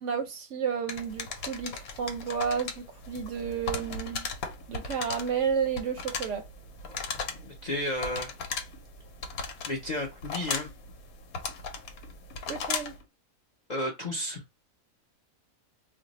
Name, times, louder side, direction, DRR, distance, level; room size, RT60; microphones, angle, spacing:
voice 1, 0.0-4.3 4.7-6.4 12.5-12.9, right 7 dB, 65° right, 0.8 m, -31 dB
sound 1, 0.9-13.0, left 5 dB, 75° left, 1.1 m, -37 dB
voice 2, 7.3-8.3 9.7-10.7 13.7-14.4, left 1 dB, 55° left, 0.5 m, -33 dB
2.6 x 2.1 x 3.9 m
omnidirectional pair, 1.5 m